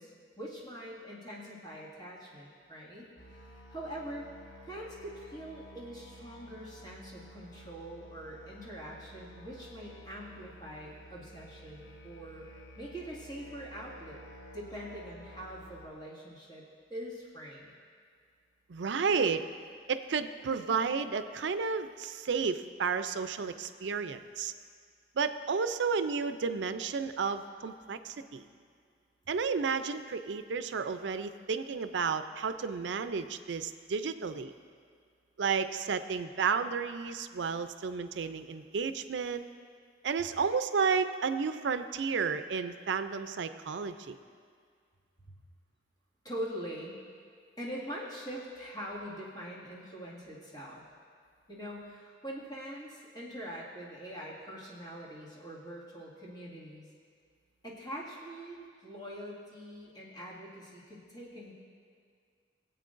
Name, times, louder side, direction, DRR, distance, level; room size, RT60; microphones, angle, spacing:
voice 1, 0.0-4.3 4.6-12.5 12.8-14.2 14.5-16.6 16.9-17.7 40.2-40.3 45.3-45.4 46.2-47.0 47.6-50.8 51.5-56.9 57.6-61.5, equal, 20° left, -7 dB, 2.0 m, -43 dB
Musical instrument, 3.2-15.9, equal, 90° left, 1.4 m, -52 dB
voice 2, 18.7-19.4 19.9-24.5 25.1-28.5 29.3-34.5 35.4-39.4 40.0-44.2, right 5 dB, 90° right, 10 dB, 0.5 m, -32 dB
23.0 x 8.1 x 2.6 m, 2.1 s
head